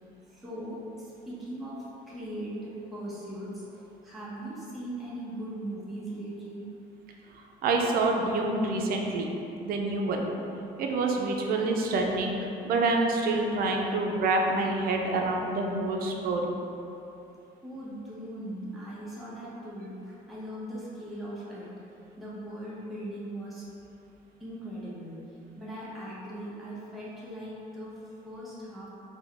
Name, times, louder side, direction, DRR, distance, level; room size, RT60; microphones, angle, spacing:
voice 1, 0.3-6.7 17.6-21.8 22.2-23.7 24.4-25.2 25.6-28.9, right 1 dB, ahead, -8 dB, 0.7 m, -39 dB
voice 2, 7.3-9.3 9.6-10.2 10.8-12.4 12.6-16.5, right 2 dB, 60° right, 1 dB, 0.4 m, -27 dB
3.3 x 2.1 x 3.6 m, 2.8 s
cardioid pair, 110°, 17 cm